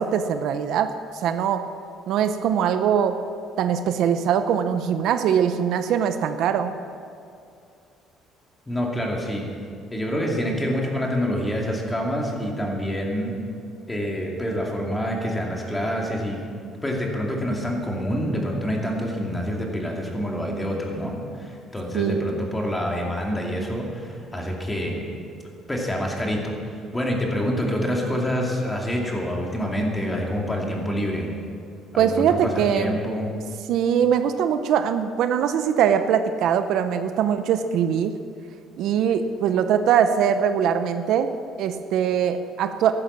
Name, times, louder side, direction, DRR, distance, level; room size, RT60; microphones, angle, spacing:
voice 1, 0.0-1.7 2.1-3.2 3.6-6.7 21.9-22.2 32.0-33.0 33.7-38.1 38.8-41.3 41.6-42.9, right 8 dB, 65° right, 9 dB, 0.8 m, -22 dB
voice 2, 8.7-9.5 9.9-13.3 13.9-16.5 16.8-25.0 25.7-31.3 31.9-33.3, equal, 10° left, -1 dB, 2.5 m, -27 dB
14.0 x 12.0 x 7.3 m, 2.4 s
cardioid pair, 145°, 0 cm